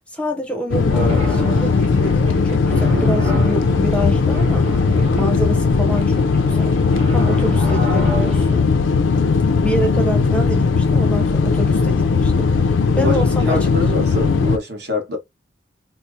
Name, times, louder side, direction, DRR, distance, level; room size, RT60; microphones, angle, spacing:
voice 1, 0.1-4.7 5.1-6.7 7.1-8.7 9.6-13.7, equal, 5° left, 0.6 m, -26 dB
sound 1, 0.7-14.6, left 4 dB, 90° left, 0.4 m, -17 dB
sound 2, 0.9-8.6, equal, 35° right, 1.4 m, -28 dB
voice 2, 12.9-15.2, left 2 dB, 60° right, 1.2 m, -25 dB
4.3 x 2.0 x 2.6 m
head